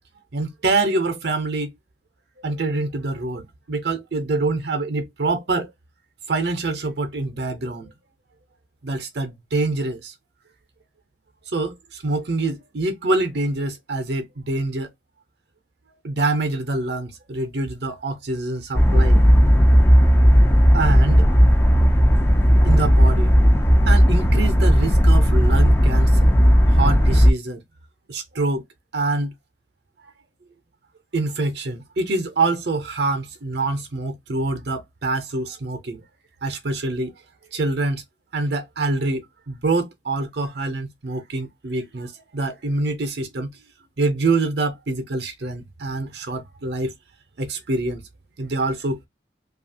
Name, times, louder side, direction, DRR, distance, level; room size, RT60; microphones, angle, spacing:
voice 1, 0.3-1.7 2.4-5.7 6.3-7.9 8.8-10.1 11.5-14.9 16.0-19.2 20.7-21.3 22.6-23.3 23.9-26.3 26.7-27.6 28.1-28.6 28.9-29.3 31.1-36.0 36.4-37.1 37.5-38.0 38.3-43.5 44.0-46.9 47.4-48.0 48.4-49.1, right 3 dB, 60° right, 0.6 m, -25 dB
sound 1, 18.7-27.3, equal, 15° left, 0.4 m, -15 dB
2.8 x 2.4 x 2.7 m
head